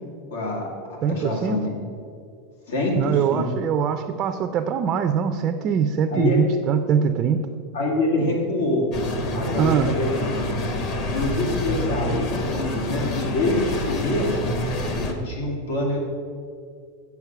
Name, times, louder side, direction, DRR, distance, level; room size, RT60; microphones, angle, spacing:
voice 1, 0.3-1.9 2.7-3.5 6.1-6.4 7.7-8.8 9.3-10.5 11.1-14.4 14.9-16.0, left 2 dB, 90° left, -1 dB, 2.3 m, -25 dB
voice 2, 1.0-1.6 3.0-7.5 9.6-9.9, right 7 dB, 25° right, 7 dB, 0.4 m, -22 dB
sound 1, 8.9-15.1, left 2 dB, 35° left, 0.9 m, -27 dB
8.1 x 7.1 x 6.0 m, 2.2 s
supercardioid pair, 170°, 0 cm